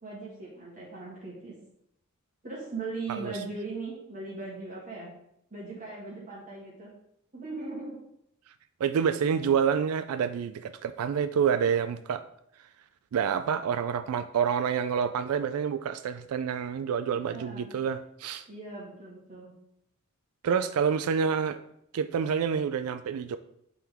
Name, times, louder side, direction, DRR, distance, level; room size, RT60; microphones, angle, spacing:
voice 1, 0.0-1.5 2.4-5.1 5.5-6.9 7.3-8.0 17.1-17.7 18.5-19.5, right 3 dB, 35° right, -6 dB, 1.9 m, -39 dB
voice 2, 8.8-12.2 13.1-18.5 20.4-21.6 21.9-23.4, right 7 dB, 80° right, 11 dB, 0.3 m, -28 dB
8.5 x 3.8 x 3.5 m, 0.75 s
head